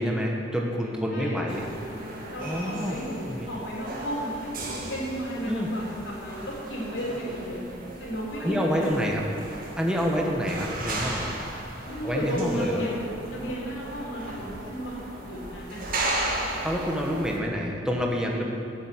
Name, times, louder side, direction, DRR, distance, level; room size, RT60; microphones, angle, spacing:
voice 1, 0.0-1.6 2.4-3.0 3.3-3.5 5.4-5.7 8.4-9.2 9.8-11.3 12.0-12.8 16.6-18.5, equal, 5° right, -1 dB, 1.1 m, -27 dB
voice 2, 1.1-1.5 2.3-4.5 4.9-7.7 8.0-8.9 11.9-15.9, equal, 70° left, -4 dB, 3.7 m, -33 dB
sound 1, 1.5-17.4, right 1 dB, 50° right, 2.0 m, -36 dB
12.5 x 7.5 x 8.6 m, 2.8 s
head